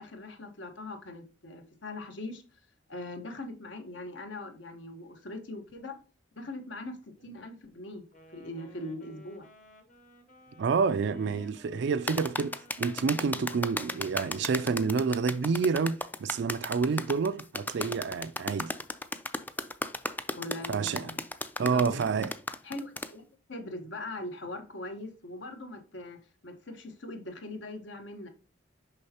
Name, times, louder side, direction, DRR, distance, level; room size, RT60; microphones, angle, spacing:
voice 1, 0.0-2.4 2.9-6.0 6.4-8.0 8.3-9.5 20.3-21.2 21.7-22.0 22.6-23.2 23.5-28.3, left 2 dB, 65° left, 1.2 m, -41 dB
Wind instrument woodwind instrument, 8.1-15.2, left 2 dB, 40° left, 1.3 m, -56 dB
voice 2, 10.6-18.7 20.7-21.1 21.6-22.3, right 5 dB, 60° right, 0.4 m, -28 dB
sound 1, 12.1-23.1, left 2 dB, 10° left, 0.3 m, -35 dB
6.5 x 5.4 x 2.8 m
head